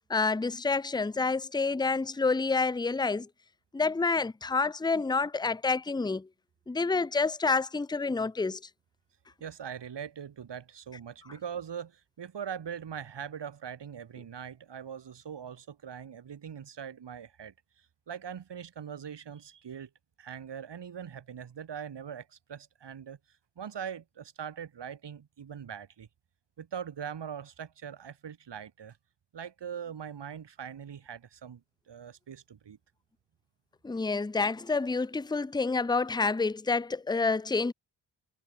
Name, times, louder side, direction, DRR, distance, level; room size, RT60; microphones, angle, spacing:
voice 1, 0.1-3.3 3.7-6.3 6.7-8.6 33.8-37.7, left 4 dB, 10° left, 0.6 m, -28 dB
voice 2, 9.4-17.5 18.1-19.9 20.2-23.2 23.6-26.1 26.6-29.0 29.3-31.6 31.9-32.8, right 8 dB, 65° right, 2.5 m, -41 dB
cardioid pair, 50°, 45 cm